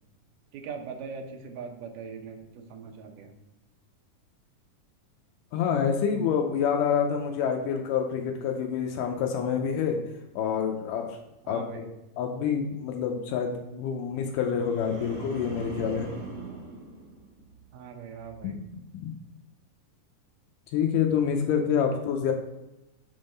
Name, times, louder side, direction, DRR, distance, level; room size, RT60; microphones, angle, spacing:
voice 1, 0.5-3.3 11.4-11.8 17.7-18.6, right 5 dB, 85° right, 4 dB, 2.4 m, -40 dB
voice 2, 5.5-10.0 10.4-11.2 11.5-16.1 18.4-18.6 18.9-19.1 20.7-22.3, left 7 dB, 90° left, 3 dB, 2.2 m, -27 dB
sound 1, 14.3-17.7 18.1-18.5, right 3 dB, 55° right, 1.4 m, -41 dB
6.2 x 3.5 x 5.2 m, 0.96 s
omnidirectional pair, 3.7 m